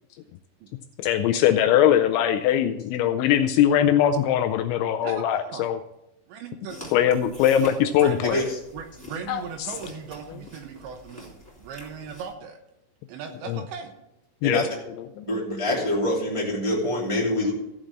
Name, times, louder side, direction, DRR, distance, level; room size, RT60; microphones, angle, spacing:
voice 1, 1.0-5.8 6.9-8.4 9.3-9.7 10.3-10.4 13.5-13.6 14.4-14.6 15.0-15.3, left 10 dB, 85° left, 6 dB, 2.7 m, -21 dB
voice 2, 5.0-5.7 6.3-6.9 8.0-8.5 8.7-12.6 13.1-13.9, right 6 dB, 75° right, 5 dB, 2.9 m, -38 dB
sound 1, 6.7-12.3, left 1 dB, 5° left, 2.7 m, -45 dB
voice 3, 15.2-17.5, left 1 dB, 10° right, -5 dB, 1.6 m, -25 dB
15.0 x 5.2 x 7.3 m, 0.87 s
omnidirectional pair, 5.8 m